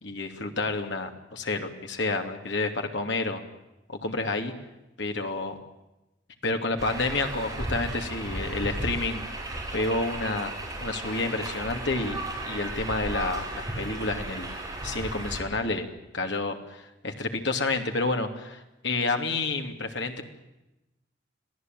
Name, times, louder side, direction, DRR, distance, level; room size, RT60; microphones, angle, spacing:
voice 1, 0.0-3.4 3.9-4.5 5.0-5.6 6.4-9.2 9.7-10.5 10.8-12.2 12.5-14.5 14.8-15.9 16.1-20.2, left 3 dB, 65° left, 5 dB, 2.8 m, -29 dB
sound 1, 6.8-15.4, right 1 dB, 20° right, 6.6 m, -35 dB
26.0 x 17.0 x 9.3 m, 0.97 s
head